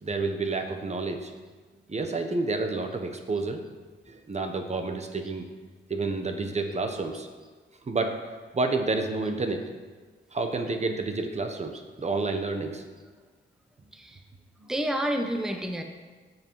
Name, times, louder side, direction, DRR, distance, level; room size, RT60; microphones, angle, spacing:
voice 1, 0.0-1.3 1.9-3.6 4.1-5.5 5.9-7.3 7.8-8.2 8.5-9.6 10.3-12.8, right 3 dB, 35° right, 6 dB, 1.2 m, -29 dB
voice 2, 13.9-14.2 14.7-15.8, equal, 5° right, 4 dB, 0.9 m, -29 dB
13.0 x 7.8 x 4.8 m, 1.4 s
cardioid pair, 90°, 19 cm